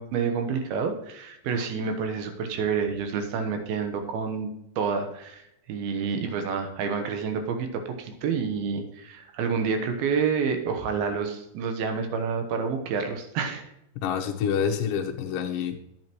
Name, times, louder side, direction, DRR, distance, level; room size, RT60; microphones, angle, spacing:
voice 1, 0.0-13.6, right 5 dB, 85° right, 6 dB, 3.0 m, -29 dB
voice 2, 14.0-15.8, left 7 dB, 70° left, 3 dB, 2.5 m, -27 dB
10.5 x 8.7 x 3.1 m, 0.82 s
omnidirectional pair, 4.3 m